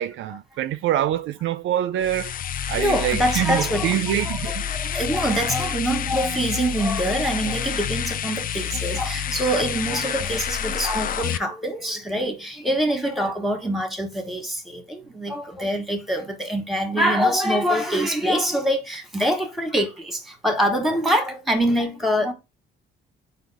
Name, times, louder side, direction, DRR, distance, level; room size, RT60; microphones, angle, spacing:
voice 1, 0.0-2.3 2.7-4.7, right 11 dB, 75° right, 0.4 m, -25 dB
sound 1, 2.0-11.4, left 9 dB, 45° left, 0.4 m, -28 dB
voice 2, 2.7-4.0 4.2-22.3, equal, ahead, 1.3 m, -24 dB
3.9 x 2.8 x 4.8 m
cardioid pair, 90°, 20 cm